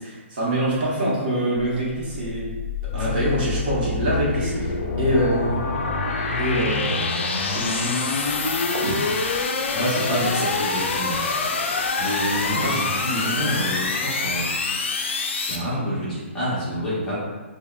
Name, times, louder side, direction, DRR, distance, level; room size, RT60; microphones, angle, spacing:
voice 1, 0.0-2.5 2.9-5.5 6.4-7.1 7.5-8.1 10.3-10.4 12.6-12.7, right 1 dB, 45° right, -6 dB, 0.8 m, -25 dB
sound 1, 1.8-15.6, left 4 dB, 65° left, 0.4 m, -26 dB
sound 2, 4.3-10.4, right 2 dB, 85° right, 0.6 m, -39 dB
voice 2, 9.7-11.2 12.0-14.5 15.4-17.2, equal, 10° left, -12 dB, 0.8 m, -27 dB
3.3 x 2.0 x 2.3 m, 1.3 s
hypercardioid pair, 155°, 7 cm